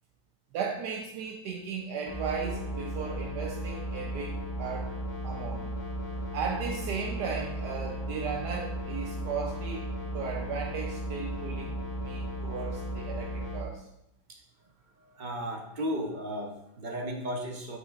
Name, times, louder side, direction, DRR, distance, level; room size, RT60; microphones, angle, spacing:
voice 1, 0.5-4.9 5.2-5.7 6.1-13.8, right 6 dB, 80° right, 1 dB, 1.2 m, -36 dB
sound 1, 2.1-13.6, equal, 20° left, 0.8 m, -35 dB
voice 2, 15.0-17.8, equal, 45° right, 2 dB, 0.6 m, -35 dB
8.0 x 6.3 x 2.4 m, 0.81 s
omnidirectional pair, 1.8 m